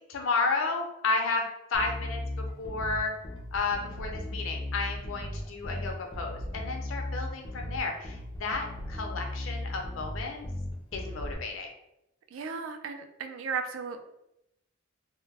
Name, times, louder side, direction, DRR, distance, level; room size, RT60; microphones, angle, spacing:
voice 1, 0.1-1.4 1.7-3.1 3.5-10.4 10.9-11.7, left 3 dB, 75° left, 2 dB, 0.5 m, -32 dB
Bass guitar, 1.7-11.3, left 1 dB, 25° left, 0.4 m, -37 dB
voice 2, 12.3-14.0, right 5 dB, 70° right, 6 dB, 0.3 m, -35 dB
2.2 x 2.0 x 3.2 m, 0.85 s
head